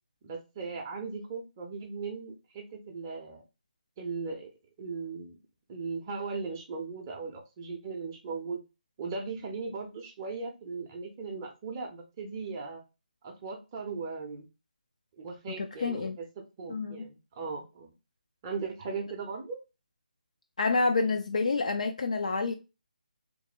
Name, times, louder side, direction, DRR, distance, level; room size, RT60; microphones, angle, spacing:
voice 1, 0.2-3.4 4.0-4.5 4.8-5.4 5.7-8.6 9.0-12.8 13.2-14.5 15.2-16.3 16.6-17.9 18.4-19.6, right 4 dB, 20° right, 0.6 m, -38 dB
voice 2, 15.6-16.2 16.7-17.1 20.6-22.5, left 3 dB, 50° left, 0.4 m, -28 dB
3.2 x 2.1 x 4.2 m
figure-of-eight pair, 150°, 5 cm